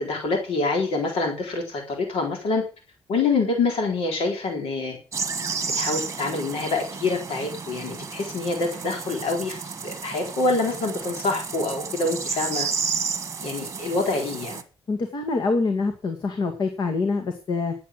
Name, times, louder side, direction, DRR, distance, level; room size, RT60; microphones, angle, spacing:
voice 1, 0.0-2.7 3.1-5.0 5.6-12.7 13.4-14.6, left 3 dB, 75° left, 2 dB, 4.0 m, -26 dB
sound 1, 5.1-14.6, right 5 dB, 30° right, 1.5 m, -32 dB
voice 2, 14.9-17.7, left 3 dB, 50° left, 6 dB, 2.1 m, -25 dB
11.0 x 8.4 x 7.7 m, 0.34 s
cardioid pair, 140°, 10 cm